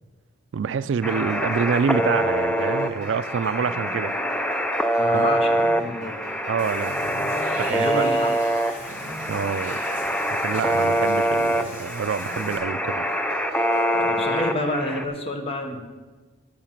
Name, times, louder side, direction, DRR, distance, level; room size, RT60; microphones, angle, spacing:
voice 1, 0.5-4.1 5.1-5.4 6.5-8.0 9.3-9.8 10.4-13.1, right 6 dB, 70° right, 15 dB, 0.3 m, -27 dB
sound 1, 1.0-15.0, equal, 5° left, 0.5 m, -25 dB
sound 2, 1.0-14.4, right 2 dB, 35° right, 2.3 m, -43 dB
voice 2, 5.0-6.1 7.7-8.3 14.1-15.8, left 1 dB, 30° left, 4 dB, 1.1 m, -28 dB
Water / Bathtub (filling or washing), 6.6-12.6, left 2 dB, 65° left, 2.3 m, -41 dB
9.5 x 8.8 x 5.9 m, 1.3 s
head